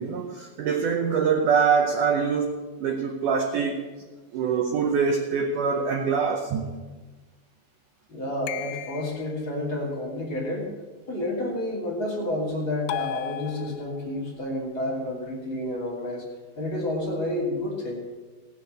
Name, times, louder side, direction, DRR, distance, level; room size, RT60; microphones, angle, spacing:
voice 1, 0.0-3.9 4.3-6.7, right 6 dB, 80° right, 4 dB, 1.8 m, -24 dB
voice 2, 8.1-10.7 11.1-16.2 16.6-18.0, left 1 dB, 35° left, -3 dB, 2.6 m, -30 dB
sound 1, 8.5-9.4 12.9-14.1, left 14 dB, 85° left, 2.6 m, -34 dB
17.0 x 6.6 x 6.5 m, 1.3 s
omnidirectional pair, 4.8 m